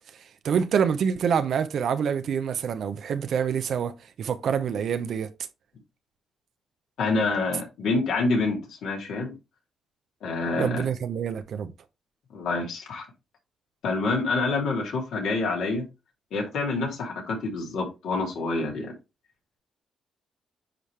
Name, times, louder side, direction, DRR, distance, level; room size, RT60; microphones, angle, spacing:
voice 1, 0.4-5.3 10.6-11.7, right 7 dB, 70° right, 0.7 m, -26 dB
voice 2, 7.0-9.3 10.2-10.8 12.3-13.0 13.8-15.8 16.3-18.9, left 3 dB, 80° left, 2.9 m, -27 dB
9.8 x 3.5 x 3.2 m
cardioid pair, 70°, 0 cm